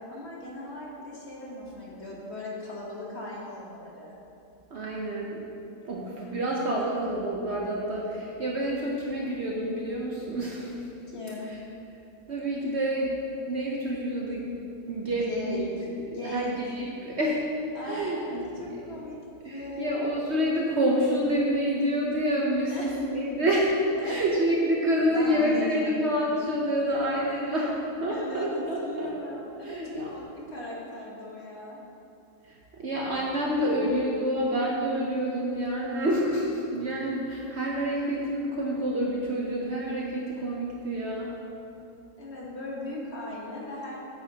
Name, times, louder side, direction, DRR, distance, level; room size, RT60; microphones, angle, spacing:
voice 1, 0.1-4.2 11.1-11.5 15.1-15.7 16.0-16.6 17.7-19.2 19.5-20.1 22.7-23.0 24.0-24.2 25.0-25.9 28.1-31.8 42.2-44.0, left 1 dB, 45° left, -4 dB, 1.3 m, -38 dB
voice 2, 4.7-5.5 5.8-10.9 11.5-11.6 12.3-13.2 13.5-14.6 14.9-15.7 16.0-17.5 17.8-18.9 19.4-23.7 24.0-29.1 29.6-30.1 32.4-41.3, equal, 55° right, -3 dB, 0.9 m, -28 dB
8.7 x 8.0 x 2.8 m, 2.8 s
omnidirectional pair, 1.7 m